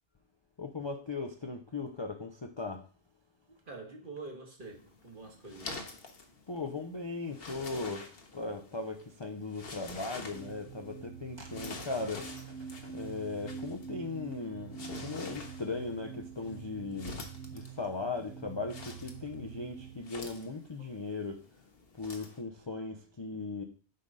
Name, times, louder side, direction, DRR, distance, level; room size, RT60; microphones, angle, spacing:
voice 1, 0.6-2.8 6.5-17.2 17.5-21.4 22.0-23.6, left 3 dB, 35° left, 0.5 m, -38 dB
voice 2, 3.7-5.8 20.8-21.0, right 3 dB, 45° right, 1.6 m, -46 dB
sound 1, 4.6-22.4, left 3 dB, 55° left, 1.2 m, -48 dB
sound 2, 10.3-20.0, right 7 dB, 65° right, 1.0 m, -46 dB
7.6 x 3.8 x 5.5 m
omnidirectional pair, 1.2 m